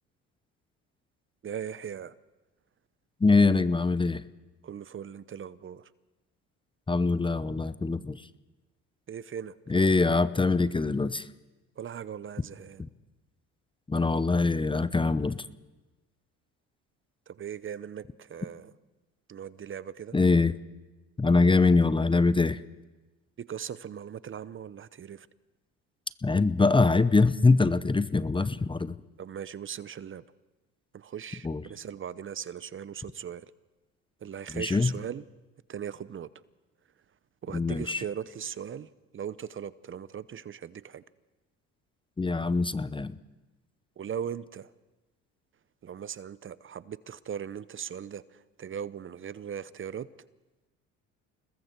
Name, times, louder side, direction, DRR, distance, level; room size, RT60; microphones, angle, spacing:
voice 1, 1.4-2.1 4.6-5.9 9.1-9.5 11.8-12.8 17.3-18.7 19.3-20.2 23.5-25.3 29.2-30.2 30.9-33.5 34.2-35.2 35.7-36.3 37.4-41.0 44.0-44.7 45.8-50.1, right 8 dB, 35° right, 17 dB, 0.8 m, -39 dB
voice 2, 3.2-4.2 6.9-8.2 9.7-11.2 13.9-15.4 20.1-20.5 21.2-22.6 26.2-28.9 31.4-31.6 34.5-34.9 37.5-38.0 42.2-43.1, left 3 dB, 15° left, 15 dB, 0.7 m, -23 dB
29.0 x 20.5 x 4.5 m, 1.1 s
supercardioid pair, 75°, 34 cm